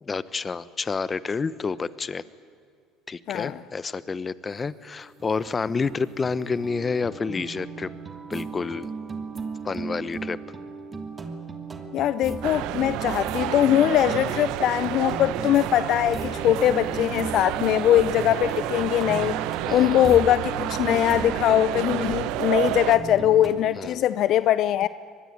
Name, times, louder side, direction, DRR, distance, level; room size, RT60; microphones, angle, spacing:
voice 1, 0.0-2.2 3.1-7.9 8.3-8.9 9.6-10.4 19.7-20.0 23.8-24.0, left 4 dB, 30° left, 1.1 m, -29 dB
voice 2, 3.3-3.6 11.9-19.4 19.7-24.9, left 12 dB, 60° left, 0.6 m, -21 dB
sound 1, 4.8-4.9 5.2-23.8, right 4 dB, 25° right, 2.9 m, -36 dB
sound 2, 12.4-22.9, right 15 dB, 70° right, 1.0 m, -30 dB
24.5 x 20.5 x 10.0 m
supercardioid pair, 80°, 0 cm